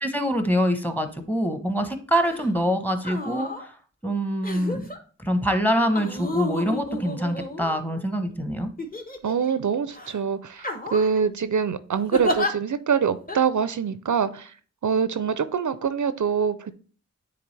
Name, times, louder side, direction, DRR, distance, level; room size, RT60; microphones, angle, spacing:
voice 1, 0.0-3.8 4.0-4.9 5.2-8.7, equal, 5° left, 8 dB, 0.9 m, -25 dB
sound 1, 2.3-2.5 3.0-3.6 4.4-5.0 5.9-8.0 8.8-9.5 9.9-10.1 10.6-11.2 12.1-12.5 13.3-13.4, left 1 dB, 30° left, 1.0 m, -31 dB
voice 2, 9.2-14.5 14.8-16.7, right 6 dB, 70° right, 13 dB, 0.4 m, -24 dB
9.4 x 3.6 x 3.2 m, 0.41 s
wide cardioid pair, 40°, 31 cm